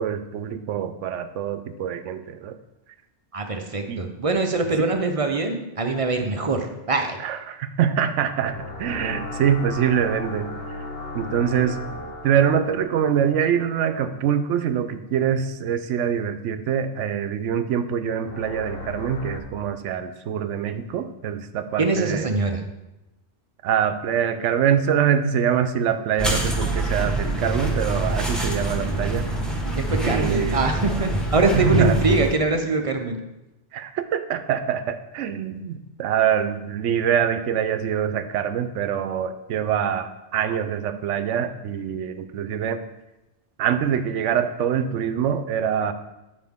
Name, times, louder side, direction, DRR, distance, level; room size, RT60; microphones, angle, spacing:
voice 1, 0.0-2.5 3.9-4.1 7.2-10.6 11.1-22.3 23.6-29.3 30.0-30.6 31.5-32.0 33.7-42.8 43.6-45.9, right 8 dB, 85° right, 11 dB, 0.9 m, -24 dB
voice 2, 3.3-7.2 21.8-22.6 29.9-33.2, right 3 dB, 40° right, 5 dB, 0.6 m, -23 dB
sound 1, 8.3-14.1 18.2-19.4, left 2 dB, 55° left, 1.1 m, -36 dB
sound 2, 26.2-32.4, right 2 dB, ahead, 1.0 m, -25 dB
9.7 x 5.0 x 3.6 m, 0.97 s
omnidirectional pair, 1.2 m